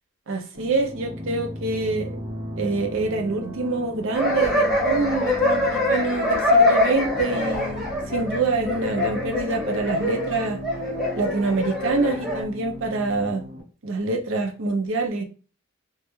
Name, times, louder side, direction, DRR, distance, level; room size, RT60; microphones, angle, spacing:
voice 1, 0.3-2.1 2.6-10.6 11.1-13.4 13.8-15.2, right 3 dB, 65° right, 4 dB, 0.5 m, -26 dB
sound 1, 0.5-13.6, left 1 dB, 85° right, 1.0 m, -37 dB
sound 2, 4.1-12.4, left 2 dB, ahead, 0.8 m, -24 dB
2.3 x 2.1 x 2.9 m, 0.36 s
head